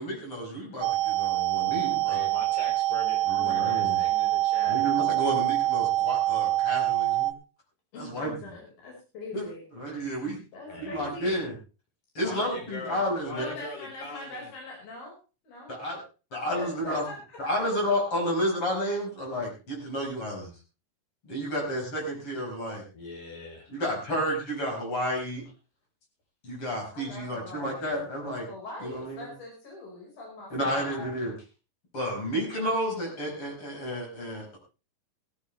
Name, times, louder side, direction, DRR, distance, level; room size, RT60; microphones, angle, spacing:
voice 1, 0.0-2.2 3.3-4.0 4.7-7.3 7.9-8.3 9.3-9.4 9.8-10.4 10.8-11.5 12.1-13.5 15.7-16.0 16.3-17.0 17.4-20.5 21.2-22.8 23.7-25.4 26.4-28.5 28.8-29.3 30.5-31.3 31.9-34.6, equal, 40° left, -1 dB, 5.9 m, -31 dB
sound 1, 0.8-7.3, right 16 dB, 90° right, 2.7 m, -25 dB
voice 2, 2.1-4.8 10.7-11.1 12.2-14.5 22.9-23.7, left 2 dB, 55° left, 2 dB, 5.4 m, -41 dB
voice 3, 3.3-4.0 7.9-9.6 10.5-11.5 13.4-15.2 15.4-15.8 16.5-17.6 18.8-18.9 26.9-28.1 28.5-31.3, left 2 dB, 85° left, -2 dB, 6.7 m, -42 dB
16.0 x 15.0 x 3.3 m, 0.33 s
omnidirectional pair, 4.0 m